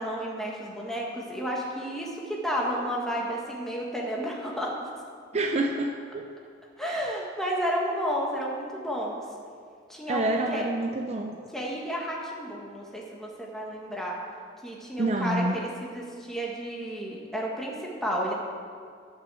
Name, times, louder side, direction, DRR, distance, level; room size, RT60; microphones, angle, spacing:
voice 1, 0.0-4.7 6.8-9.2 9.9-10.6 11.5-14.2 14.6-18.3, equal, ahead, -3 dB, 1.6 m, -32 dB
voice 2, 5.3-6.3 6.8-7.1 10.1-11.4 15.0-15.6, right 2 dB, 35° right, 3 dB, 0.6 m, -28 dB
11.5 x 6.2 x 7.6 m, 2.2 s
head